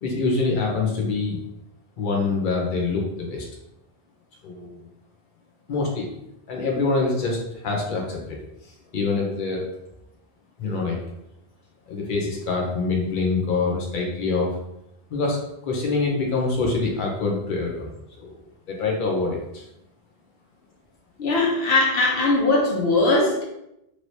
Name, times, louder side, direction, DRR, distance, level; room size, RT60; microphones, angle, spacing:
voice 1, 0.0-1.4 2.0-3.4 4.4-4.8 5.7-6.1 6.5-8.4 8.9-9.7 10.6-11.0 11.9-14.5 15.1-15.4 15.6-17.9 18.2-18.4 18.7-19.6, left 3 dB, 55° left, -1 dB, 0.9 m, -25 dB
voice 2, 21.2-23.4, left 2 dB, 75° left, -1 dB, 0.9 m, -20 dB
3.1 x 2.9 x 2.7 m, 0.82 s
omnidirectional pair, 1.1 m